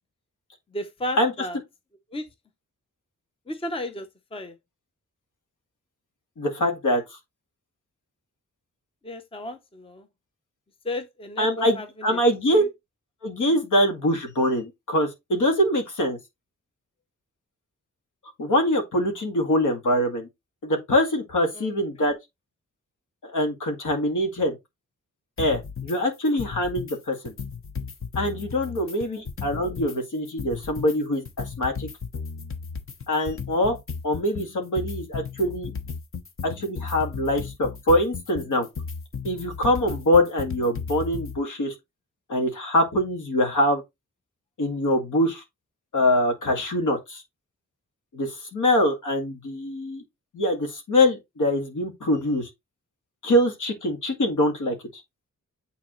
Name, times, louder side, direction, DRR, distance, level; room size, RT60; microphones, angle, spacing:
voice 1, 0.7-1.6 2.1-2.3 3.5-4.5 9.0-10.1 10.8-12.2 12.5-12.7 21.5-21.7 29.0-29.2, left 1 dB, 20° left, 0.7 m, -34 dB
voice 2, 6.4-7.0 11.4-12.6 13.2-16.2 18.4-20.3 20.6-22.2 23.2-24.6 25.4-27.3 28.2-31.9 33.1-33.8 34.0-35.7 36.4-38.7 39.2-41.7 42.3-43.8 44.6-45.4 45.9-47.2 48.1-50.0 50.3-52.5 53.2-54.8, left 1 dB, 80° left, 2.0 m, -24 dB
sound 1, 25.4-26.0 26.3-27.0 27.3-30.0 30.3-41.4, left 5 dB, 45° left, 0.8 m, -35 dB
8.9 x 4.1 x 3.1 m
wide cardioid pair, 170°, 30 cm